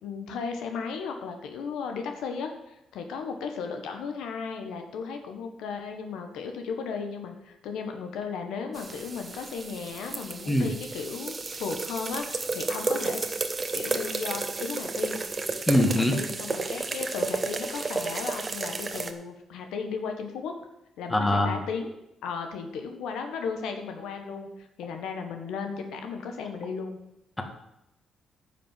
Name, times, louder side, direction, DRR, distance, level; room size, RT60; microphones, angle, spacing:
voice 1, 0.0-13.2 13.7-15.2 15.8-20.5 21.0-21.9 22.2-27.0, left 5 dB, 85° left, 5 dB, 1.4 m, -35 dB
sound 1, 8.7-19.1, right 3 dB, 30° right, 1.1 m, -32 dB
voice 2, 15.7-16.1 21.1-21.6, left 1 dB, 10° left, 4 dB, 1.9 m, -22 dB
10.0 x 6.0 x 7.7 m, 0.87 s
cardioid pair, 90°, 0 cm